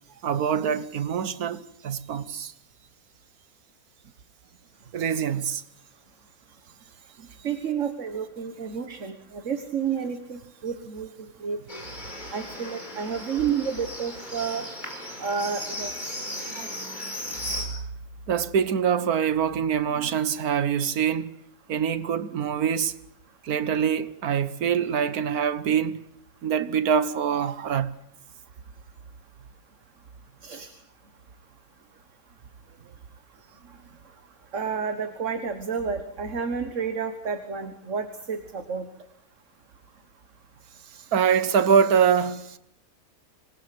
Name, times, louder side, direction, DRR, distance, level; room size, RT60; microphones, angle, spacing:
voice 1, 0.2-2.5 4.9-5.6 7.2-7.3 16.6-16.8 17.6-17.8 18.3-21.3 21.7-22.9 23.4-26.0 26.4-27.9 41.1-42.6, right 7 dB, 90° right, 1.6 m, -24 dB
voice 2, 7.4-11.1 11.4-11.8 12.3-14.6 15.2-15.9 30.4-30.7 34.5-38.9, right 6 dB, 55° right, 1.9 m, -30 dB
Livestock farm animals working animals, 11.7-17.7, left 1 dB, 30° left, 5.2 m, -36 dB
27.0 x 19.5 x 7.9 m
omnidirectional pair, 1.5 m